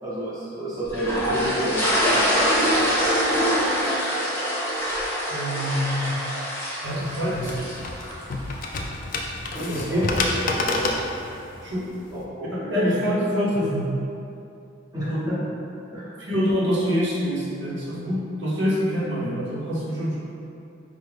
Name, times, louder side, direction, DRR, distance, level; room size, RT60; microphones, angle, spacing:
voice 1, 0.0-2.8 9.5-10.9 12.1-12.5 12.8-12.9 14.9-15.4 15.9-16.1, equal, 20° right, -10 dB, 0.8 m, -30 dB
sound 1, 0.9-8.2, equal, 10° left, 0.7 m, -24 dB
voice 2, 5.3-6.2 6.8-7.6 9.7-10.1 11.6-11.9 12.4-13.9 15.1-15.3 16.2-20.2, equal, 70° right, -7 dB, 0.7 m, -25 dB
sound 2, 6.9-12.2, left 2 dB, 45° left, 0.3 m, -29 dB
4.8 x 2.1 x 3.2 m, 2.7 s
head